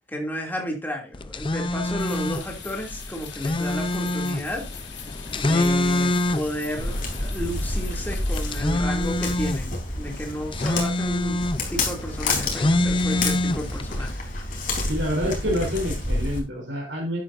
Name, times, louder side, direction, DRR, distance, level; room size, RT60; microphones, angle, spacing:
voice 1, 0.1-4.7 5.3-11.4 11.7-14.2, equal, 10° left, 1 dB, 2.6 m, -32 dB
sound 1, 1.1-14.1, left 1 dB, 30° left, 0.6 m, -26 dB
sound 2, 2.0-8.6, left 7 dB, 75° left, 4.1 m, -42 dB
Walk footsteps, 6.8-16.4, left 2 dB, 45° left, 3.8 m, -29 dB
voice 2, 14.9-17.2, equal, 85° right, -2 dB, 3.6 m, -27 dB
12.5 x 10.5 x 2.6 m, 0.26 s
head